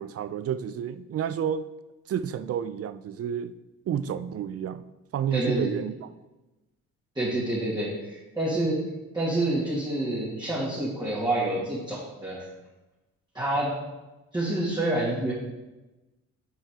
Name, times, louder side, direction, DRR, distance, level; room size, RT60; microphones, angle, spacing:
voice 1, 0.0-1.7 2.1-3.5 3.9-4.8 5.1-6.1, right 8 dB, 50° right, 14 dB, 0.5 m, -30 dB
voice 2, 5.3-5.7 7.2-8.8 9.1-12.5 13.3-13.8 14.3-15.3, right 1 dB, 15° right, -9 dB, 2.3 m, -28 dB
8.9 x 5.5 x 3.8 m, 1.1 s
cardioid pair, 90°, 30 cm